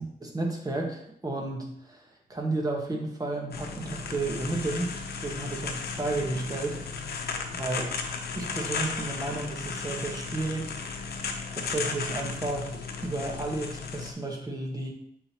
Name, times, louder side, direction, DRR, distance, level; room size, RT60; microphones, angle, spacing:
voice 1, 0.0-4.9 5.2-6.8 7.5-7.9 8.3-10.7 11.6-14.9, right 2 dB, 25° right, 1 dB, 1.3 m, -32 dB
sound 1, 3.5-14.1, left 5 dB, 85° left, 0.7 m, -35 dB
8.5 x 3.9 x 3.0 m, 0.70 s
wide cardioid pair, 110°, 16 cm